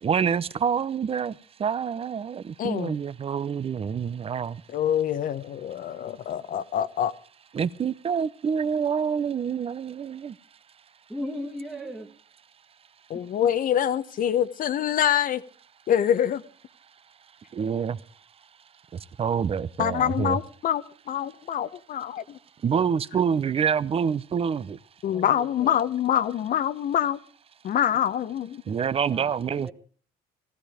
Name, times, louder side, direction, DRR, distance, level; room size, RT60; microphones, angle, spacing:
voice 1, 0.0-1.3 1.6-4.6 7.5-10.3 17.5-18.0 18.9-20.4 22.6-24.8 28.7-29.7, right 7 dB, 35° right, 0.7 m, -27 dB
voice 2, 2.6-2.9 4.7-7.1 13.1-15.4 15.9-16.4 19.8-22.4 25.0-27.2 27.6-28.6, left 10 dB, 55° left, 1.0 m, -25 dB
voice 3, 11.1-12.1 25.0-25.8 29.0-29.7, equal, 5° right, 1.6 m, -37 dB
16.0 x 15.0 x 5.0 m
cardioid pair, 110°, 17 cm